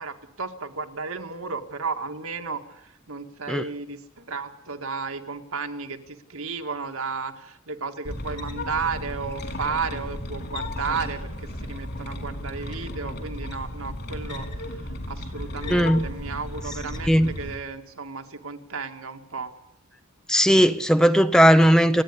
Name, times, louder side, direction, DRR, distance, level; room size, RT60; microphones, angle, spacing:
voice 1, 0.0-19.5, right 4 dB, 75° right, 6 dB, 2.0 m, -33 dB
sound 1, 8.0-17.5, left 1 dB, 50° left, 4.4 m, -34 dB
voice 2, 15.7-16.0 17.1-17.3 20.3-22.0, equal, 5° left, 11 dB, 0.8 m, -17 dB
29.5 x 10.5 x 9.8 m, 0.78 s
head